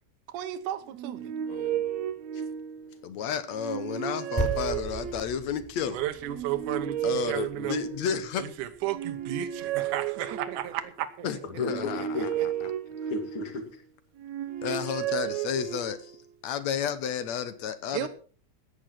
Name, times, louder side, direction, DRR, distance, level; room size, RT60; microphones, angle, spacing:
voice 1, 0.3-1.3 5.9-7.8 8.4-11.3 11.8-12.5 17.9-18.1, right 12 dB, 90° right, 2.5 m, -34 dB
sound 1, 0.9-3.0 3.5-5.5 6.2-8.4 8.8-10.9 11.6-13.7 14.2-16.2, right 10 dB, 70° right, 2.1 m, -33 dB
voice 2, 1.5-1.8 2.3-2.4 2.9-3.3 11.4-12.3 13.0-13.8, left 3 dB, 45° left, 2.8 m, -35 dB
voice 3, 3.0-6.0 7.0-8.5 11.2-12.7 14.6-16.0 16.4-18.1, left 8 dB, 65° left, 2.4 m, -32 dB
sound 2, 4.4-8.9, right 1 dB, 15° left, 3.1 m, -37 dB
15.0 x 9.9 x 5.9 m
omnidirectional pair, 3.5 m